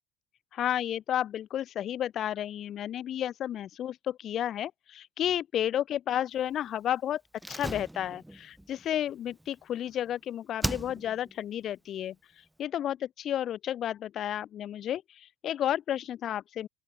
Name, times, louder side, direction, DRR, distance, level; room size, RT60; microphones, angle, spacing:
voice 1, 0.5-7.2 7.5-12.1 12.6-16.7, left 11 dB, 45° left, 1.1 m, -32 dB
Slam, 7.4-10.1 10.6-11.4 11.6-11.7, right 1 dB, 5° right, 1.6 m, -38 dB
open air
cardioid pair, 135°, 0 cm